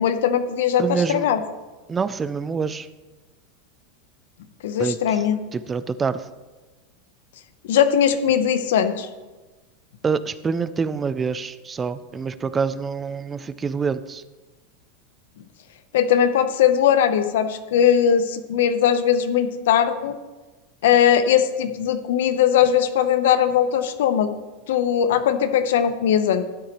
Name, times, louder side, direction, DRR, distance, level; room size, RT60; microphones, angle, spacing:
voice 1, 0.0-1.4 4.6-5.4 7.6-9.1 15.9-20.2 20.8-24.3 24.7-26.4, left 9 dB, 80° left, 10 dB, 0.8 m, -19 dB
voice 2, 0.8-1.3 1.9-2.9 4.8-5.2 5.5-6.2 10.0-14.2, right 5 dB, 20° right, 15 dB, 0.4 m, -26 dB
12.5 x 9.7 x 3.1 m, 1.2 s
supercardioid pair, 120°, 0 cm